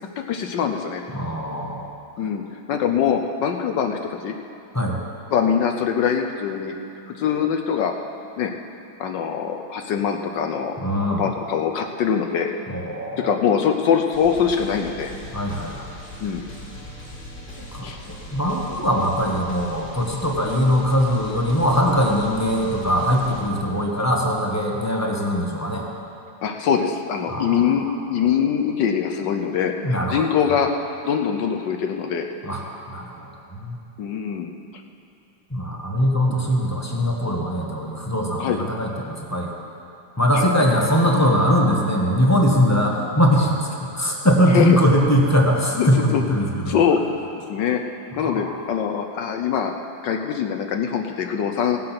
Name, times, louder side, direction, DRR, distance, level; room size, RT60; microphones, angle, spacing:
voice 1, 0.2-1.0 2.2-4.4 5.3-6.8 7.1-7.9 8.4-8.5 9.0-10.8 11.2-12.5 13.2-15.1 16.2-16.4 17.8-18.0 26.4-30.7 31.0-32.2 34.0-34.5 38.4-38.6 40.3-40.5 44.5-44.7 45.8-47.0 47.5-47.8 48.2-49.7 50.0-51.8, left 7 dB, 65° left, 4 dB, 1.3 m, -23 dB
voice 2, 1.1-1.9 4.7-5.0 10.8-11.3 12.7-13.3 15.3-16.0 17.6-17.9 18.3-25.9 27.3-27.9 29.8-30.2 32.4-33.8 35.5-39.5 40.2-43.5 43.8-46.7 48.2-48.5, equal, 10° left, -1 dB, 1.0 m, -21 dB
sound 1, 14.1-23.5, left 1 dB, 30° left, 1.9 m, -39 dB
18.0 x 7.7 x 5.9 m, 2.8 s
omnidirectional pair, 2.3 m